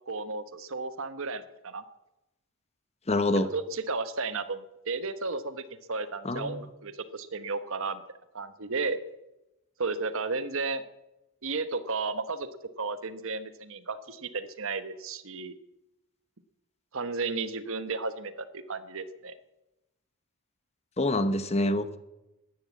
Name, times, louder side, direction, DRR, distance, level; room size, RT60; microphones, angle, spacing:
voice 1, 0.1-1.8 3.3-5.6 5.9-8.0 8.3-9.0 9.8-10.8 11.4-12.5 12.8-15.5 16.9-19.3, right 4 dB, 65° right, 12 dB, 1.1 m, -33 dB
voice 2, 3.1-3.5 6.2-6.6 21.0-22.0, left 1 dB, 30° left, 11 dB, 0.9 m, -26 dB
13.5 x 10.5 x 8.4 m, 0.95 s
head